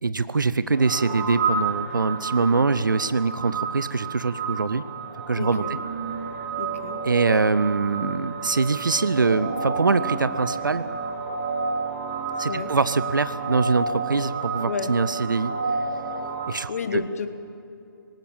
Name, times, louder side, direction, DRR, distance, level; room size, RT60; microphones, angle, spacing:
voice 1, 0.0-4.8 5.3-5.6 7.0-10.9 12.4-15.5 16.5-17.0, right 4 dB, 65° right, 15 dB, 0.7 m, -23 dB
sound 1, 0.7-16.5, right 4 dB, 35° right, 2.4 m, -30 dB
voice 2, 5.4-5.8 6.6-7.0 12.5-12.7 14.6-14.9 16.7-17.3, left 5 dB, 40° left, 9 dB, 1.4 m, -30 dB
19.5 x 18.5 x 7.5 m, 2.7 s
figure-of-eight pair, 145°, 12 cm